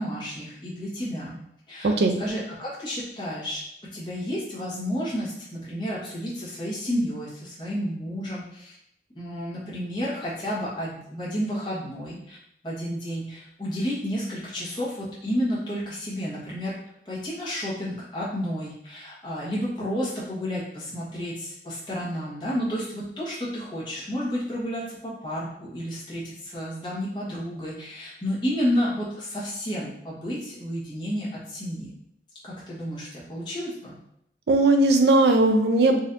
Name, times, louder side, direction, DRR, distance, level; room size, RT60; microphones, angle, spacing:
voice 1, 0.0-1.4 1.7-3.6 3.9-8.8 9.1-12.4 12.6-16.7 17.0-31.9 32.4-34.0, equal, 25° left, -8 dB, 1.2 m, -31 dB
voice 2, 1.8-2.1 34.5-36.0, right 2 dB, 70° right, 5 dB, 0.4 m, -18 dB
4.0 x 2.7 x 2.6 m, 0.74 s
head